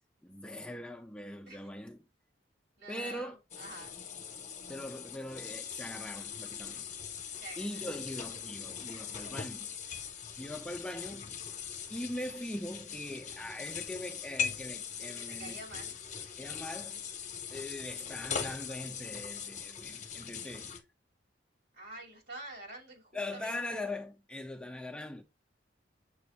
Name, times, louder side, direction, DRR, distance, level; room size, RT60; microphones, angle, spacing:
voice 1, 0.2-2.0 2.9-3.4 4.7-6.8 7.6-9.7 10.4-11.4 11.9-15.5 16.4-17.0 17.5-20.7 23.1-25.2, left 1 dB, 5° left, 0.4 m, -41 dB
voice 2, 2.8-4.0 7.3-7.9 15.0-15.9 21.7-23.8, right 2 dB, 90° right, 2.9 m, -47 dB
sound 1, 3.5-20.8, left 7 dB, 40° left, 0.7 m, -41 dB
6.8 x 2.5 x 3.1 m
head